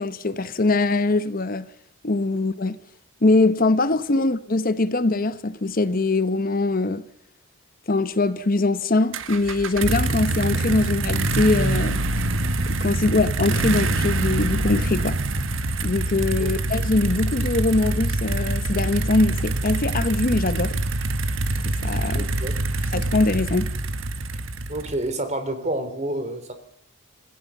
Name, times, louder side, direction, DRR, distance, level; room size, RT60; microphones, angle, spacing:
voice 1, 0.0-1.7 2.0-2.8 3.2-7.0 7.9-12.0 12.7-15.2 15.8-20.8 21.6-22.3 22.9-23.7, left 2 dB, 45° left, 0.9 m, -22 dB
sound 1, 9.1-25.1, right 2 dB, 70° right, 1.4 m, -25 dB
voice 2, 22.1-22.5 24.7-26.5, right 1 dB, 35° right, 3.4 m, -28 dB
26.5 x 16.5 x 7.1 m
head